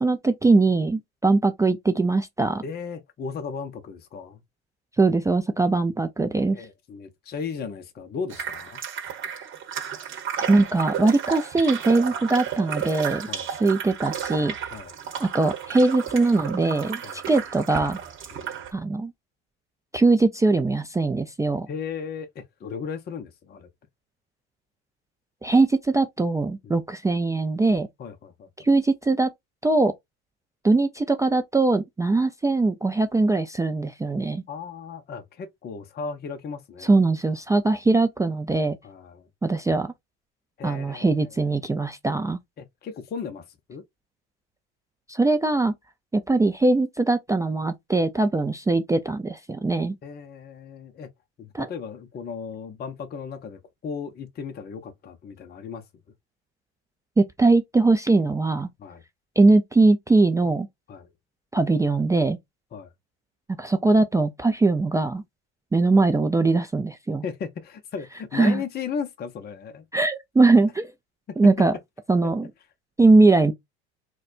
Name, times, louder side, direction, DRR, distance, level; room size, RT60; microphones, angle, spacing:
voice 1, 0.0-2.6 5.0-6.6 10.5-13.3 13.6-14.5 15.2-18.0 18.7-19.1 19.9-21.7 25.4-27.9 28.6-29.3 29.6-29.9 30.6-34.4 36.8-38.8 39.4-39.9 40.6-42.4 45.1-45.7 46.1-49.9 51.5-51.7 57.2-58.7 59.4-60.7 61.5-62.4 63.6-65.2 65.7-67.2 68.3-68.6 69.9-70.9 71.4-71.7 72.1-72.5 73.0-73.5, right 3 dB, 10° right, 0.3 m, -21 dB
voice 2, 2.6-4.4 6.5-8.8 13.3-13.5 14.7-15.0 17.0-17.2 18.3-18.5 21.7-23.7 26.6-26.8 28.0-28.7 34.5-36.9 38.8-39.3 40.6-41.5 42.6-43.8 50.0-51.1 51.4-55.8 58.8-59.0 60.9-61.1 62.7-62.9 67.2-69.9 71.3-71.4 72.2-72.3, left 6 dB, 30° left, 0.6 m, -36 dB
sound 1, 8.3-18.7, right 8 dB, 40° right, 1.0 m, -33 dB
4.1 x 2.2 x 2.4 m
hypercardioid pair, 80°, 33 cm